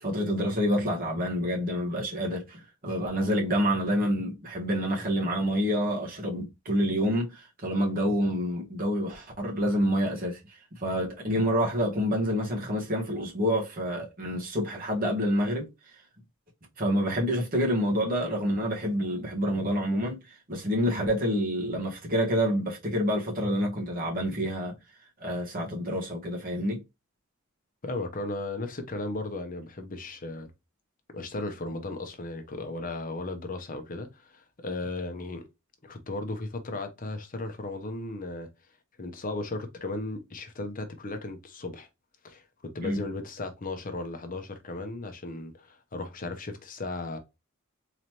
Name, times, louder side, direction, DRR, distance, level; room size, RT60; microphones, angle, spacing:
voice 1, 0.0-15.7 16.8-24.7 25.2-26.8 42.8-43.0, equal, 40° right, 1.4 m, -28 dB
voice 2, 27.8-30.5 31.1-35.4 35.8-38.5 39.0-41.9 42.2-42.4 42.7-47.2, left 2 dB, 40° left, 0.8 m, -36 dB
3.9 x 3.0 x 3.1 m
head